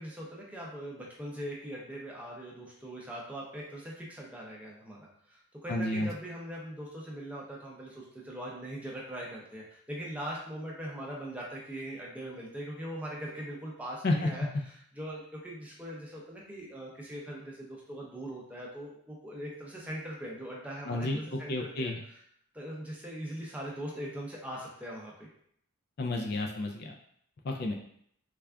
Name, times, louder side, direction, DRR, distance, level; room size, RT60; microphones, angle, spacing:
voice 1, 0.0-22.2 22.5-25.3, right 1 dB, 5° right, -3 dB, 0.6 m, -41 dB
voice 2, 5.7-6.1 14.0-14.3 20.9-21.2 21.5-22.0 26.0-26.9 27.4-27.7, left 2 dB, 45° left, 1 dB, 0.3 m, -30 dB
3.4 x 2.3 x 3.4 m, 0.68 s
head